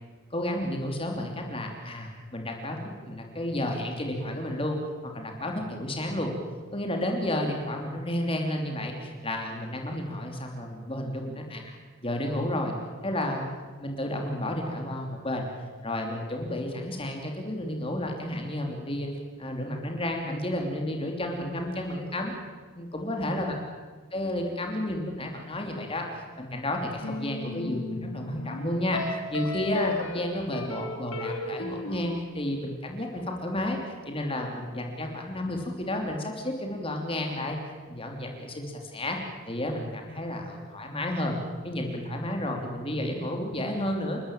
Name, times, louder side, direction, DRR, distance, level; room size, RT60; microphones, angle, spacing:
voice 1, 0.3-4.8 5.0-6.3 6.7-11.7 12.0-12.7 13.0-13.5 13.8-15.5 15.8-19.1 19.4-22.3 22.7-23.5 24.1-26.1 26.4-33.8 34.0-37.6 37.9-39.2 39.5-41.4 41.6-44.2, left 1 dB, 25° left, 2 dB, 3.1 m, -31 dB
sound 1, 27.0-32.2, left 3 dB, 80° left, 2.8 m, -34 dB
29.0 x 13.5 x 9.1 m, 1.4 s
head